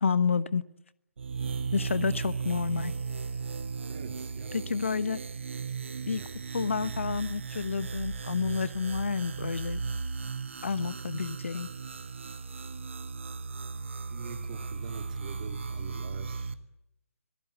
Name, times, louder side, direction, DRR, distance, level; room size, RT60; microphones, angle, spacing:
voice 1, 0.0-0.6 1.7-2.9 4.5-5.2 6.0-6.2 6.5-9.8 10.6-11.7, left 5 dB, 55° left, 16 dB, 1.1 m, -29 dB
sound 1, 1.2-16.5, right 5 dB, 55° right, 1.3 m, -36 dB
voice 2, 3.9-4.6 5.9-6.3 6.8-6.9 14.1-16.6, right 7 dB, 35° right, 5 dB, 3.2 m, -44 dB
26.0 x 18.5 x 8.7 m, 0.82 s
figure-of-eight pair, 135°, 8 cm